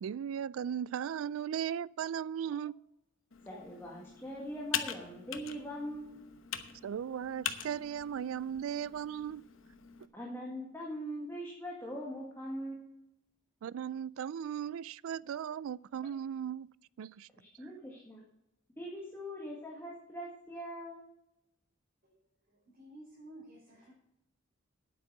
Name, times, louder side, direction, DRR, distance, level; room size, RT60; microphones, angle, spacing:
voice 1, 0.0-2.7 6.8-9.4 13.6-16.7 17.0-17.3, right 8 dB, 80° right, 0.3 m, -37 dB
Computer keyboard, 3.3-10.1, left 9 dB, 75° left, 1.0 m, -42 dB
voice 2, 3.5-6.3 10.1-13.1 17.4-18.2 18.8-21.1, equal, 10° left, 2.0 m, -42 dB
voice 3, 22.5-23.9, right 1 dB, 45° right, 5.0 m, -53 dB
9.3 x 8.7 x 6.8 m
head